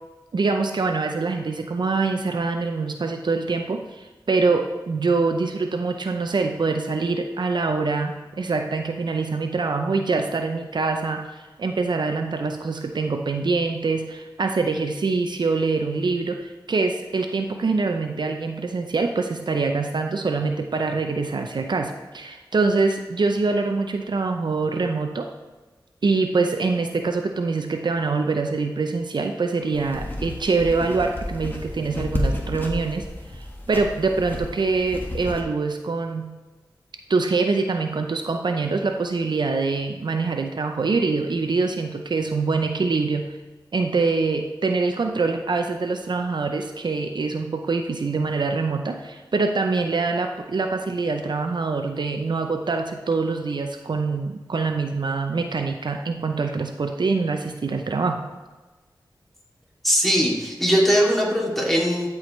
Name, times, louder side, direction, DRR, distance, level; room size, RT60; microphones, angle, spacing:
voice 1, 0.3-25.3 26.0-33.0 33.3-36.3 37.1-43.3 43.7-58.2, right 4 dB, 65° right, 4 dB, 0.6 m, -24 dB
sound 1, 29.7-35.4, left 1 dB, 25° left, 1.4 m, -31 dB
voice 2, 59.8-62.1, equal, ahead, -4 dB, 2.4 m, -20 dB
12.5 x 4.8 x 3.1 m, 1.2 s
cardioid pair, 45°, 8 cm